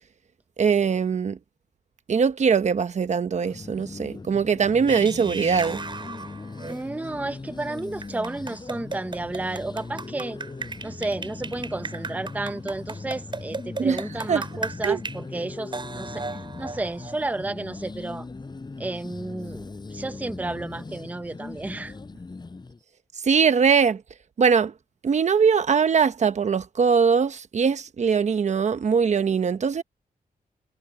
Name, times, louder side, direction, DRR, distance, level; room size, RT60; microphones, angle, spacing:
voice 1, 0.6-1.4 2.1-5.8 13.8-14.0 14.3-14.4 14.8-15.0 23.2-24.0 24.4-24.7 25.0-29.8, right 6 dB, 50° right, 1.0 m, -21 dB
sound 1, 3.3-22.8, left 3 dB, 30° left, 7.9 m, -39 dB
sound 2, 4.9-6.8 7.8-15.2 15.7-17.4, right 3 dB, 35° right, 4.7 m, -36 dB
voice 2, 6.7-10.4 10.8-16.3 16.6-18.3 18.8-22.0, right 2 dB, 10° right, 0.7 m, -32 dB
wide cardioid pair, 120°, 15 cm